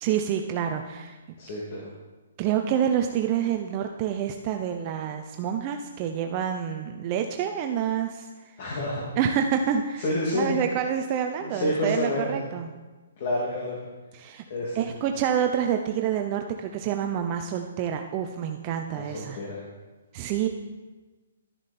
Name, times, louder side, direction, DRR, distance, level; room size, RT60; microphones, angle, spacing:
voice 1, 0.0-1.2 2.4-8.6 9.2-10.0 10.3-12.7 14.1-14.4 14.7-19.4 20.1-20.5, right 9 dB, 25° right, 5 dB, 0.5 m, -27 dB
voice 2, 1.4-1.9 8.6-9.0 10.0-10.6 11.4-12.4 13.2-13.8 14.5-14.9 18.9-19.6, left 1 dB, 35° left, -4 dB, 2.3 m, -29 dB
12.5 x 10.0 x 4.2 m, 1.3 s
hypercardioid pair, 170°, 0 cm